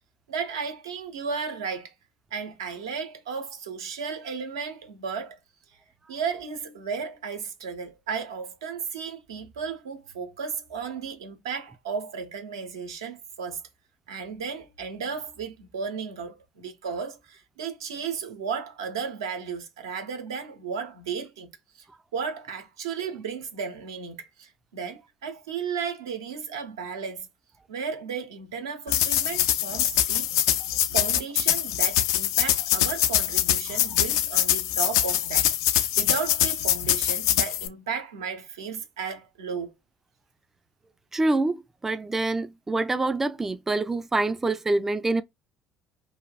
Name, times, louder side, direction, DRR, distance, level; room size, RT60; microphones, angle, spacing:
voice 1, 0.3-1.9 2.3-5.4 6.1-13.6 14.1-21.5 21.8-21.9 22.1-27.3 27.7-30.3 30.9-35.5 36.0-39.7, right 6 dB, 85° right, 0.8 m, -34 dB
sound 1, 28.9-37.7, left 11 dB, 75° left, 0.4 m, -24 dB
voice 2, 41.1-45.2, right 2 dB, 15° right, 0.3 m, -26 dB
3.2 x 2.2 x 2.3 m
hypercardioid pair, 65°, 2 cm